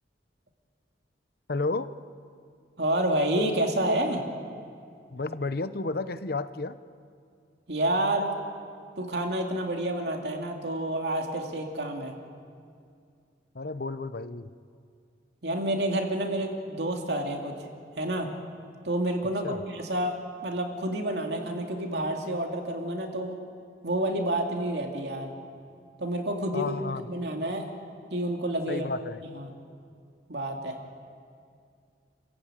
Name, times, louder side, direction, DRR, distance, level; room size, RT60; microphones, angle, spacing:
voice 1, 1.5-1.9 5.1-6.8 13.5-14.5 19.4-19.6 26.5-27.1 28.7-29.2, left 3 dB, 55° left, 13 dB, 0.8 m, -32 dB
voice 2, 2.8-4.2 7.7-8.4 9.0-12.1 15.4-17.5 18.0-18.3 18.8-20.2 20.4-23.4 23.8-25.3 26.0-26.8 27.1-27.7 28.1-28.9 29.3-29.5 30.3-30.8, right 1 dB, 65° right, 2 dB, 2.5 m, -29 dB
29.5 x 15.5 x 8.9 m, 2.3 s
head